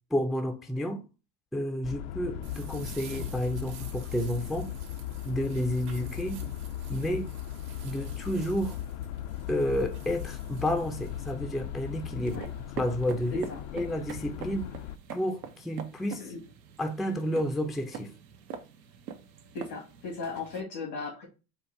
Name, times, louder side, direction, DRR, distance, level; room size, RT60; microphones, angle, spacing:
voice 1, 0.1-1.0 1.5-4.7 5.2-6.4 6.9-7.3 7.8-8.8 9.5-12.5 12.8-13.5 13.7-14.7 15.1-16.3 16.8-18.1, equal, ahead, 0.4 m, -30 dB
sound 1, 1.8-15.0, left 11 dB, 60° left, 0.5 m, -38 dB
sound 2, 2.4-11.3, right 7 dB, 65° right, 1.2 m, -50 dB
sound 3, 10.8-20.6, right 7 dB, 90° right, 0.8 m, -45 dB
voice 2, 19.5-21.3, left 4 dB, 90° left, 2.0 m, -37 dB
4.4 x 2.5 x 4.6 m
hypercardioid pair, 85°, 48 cm